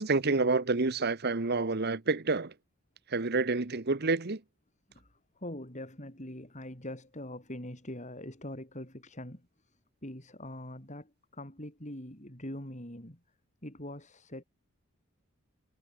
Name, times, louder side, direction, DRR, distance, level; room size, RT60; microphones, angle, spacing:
voice 1, 0.0-2.5 3.1-4.4, right 3 dB, 50° right, 1.1 m, -28 dB
voice 2, 4.9-13.2 13.6-14.4, left 1 dB, 35° left, 7.6 m, -43 dB
head